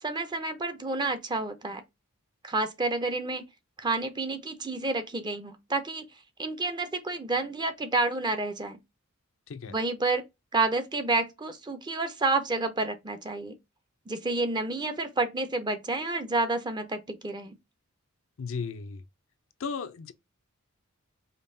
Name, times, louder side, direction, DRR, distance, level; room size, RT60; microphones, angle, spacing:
voice 1, 0.0-1.8 2.4-3.5 3.8-6.1 6.4-8.8 9.7-10.2 10.5-13.5 14.1-17.5, right 3 dB, 20° right, 0.5 m, -29 dB
voice 2, 18.4-19.0 19.6-20.1, left 5 dB, 65° left, 0.4 m, -35 dB
5.1 x 2.3 x 2.6 m
head